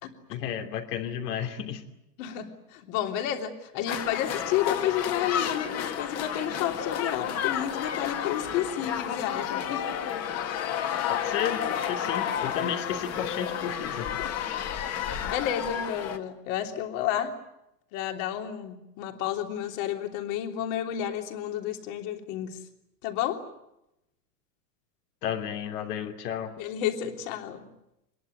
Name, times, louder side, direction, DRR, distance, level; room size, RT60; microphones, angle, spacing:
voice 1, 0.3-1.8 11.0-14.1 25.2-26.5, left 9 dB, 80° left, 5 dB, 3.2 m, -32 dB
voice 2, 2.2-9.9 14.2-14.3 15.2-17.3 17.9-22.6 23.0-23.4 26.6-27.7, left 10 dB, 55° left, 5 dB, 3.3 m, -31 dB
sound 1, 3.9-16.2, left 9 dB, 30° left, 2.0 m, -31 dB
25.0 x 21.5 x 9.3 m, 0.86 s
supercardioid pair, 155°, 47 cm